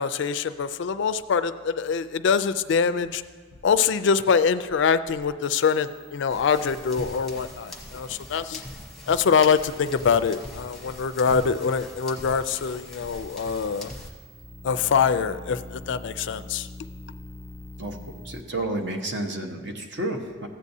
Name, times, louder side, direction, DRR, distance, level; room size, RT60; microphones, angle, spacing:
voice 1, 0.0-3.2 3.6-8.6 9.1-13.9 14.6-16.7, left 6 dB, 60° left, 13 dB, 0.3 m, -24 dB
sound 1, 0.5-18.4, left 1 dB, 25° right, 0.7 m, -47 dB
sound 2, 6.3-14.1, left 1 dB, ahead, 0.9 m, -41 dB
voice 2, 17.8-20.5, right 1 dB, 55° right, 4 dB, 1.0 m, -31 dB
15.0 x 8.4 x 2.7 m, 1.5 s
head